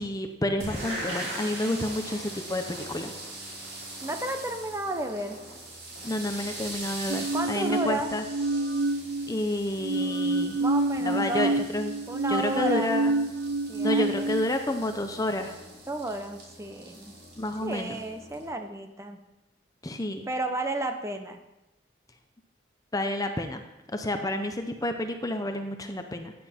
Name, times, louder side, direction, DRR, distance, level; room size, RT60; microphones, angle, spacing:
voice 1, 0.0-3.1 6.0-8.2 9.3-10.6 11.0-11.9 12.3-13.1 13.8-15.5 17.4-18.0 19.8-20.3 22.9-23.6 23.9-26.3, left 1 dB, 20° left, 6 dB, 0.7 m, -30 dB
sound 1, 0.6-18.5, right 1 dB, 55° right, 4.9 m, -41 dB
voice 2, 4.0-5.4 7.3-8.1 10.6-11.6 12.1-13.3 13.7-14.3 15.9-17.1 17.6-19.2 20.3-21.4, right 1 dB, 15° right, 6 dB, 0.9 m, -32 dB
sound 2, 7.1-9.4 9.8-14.5, right 2 dB, 80° right, 0.5 m, -28 dB
14.5 x 9.5 x 4.4 m, 0.97 s
head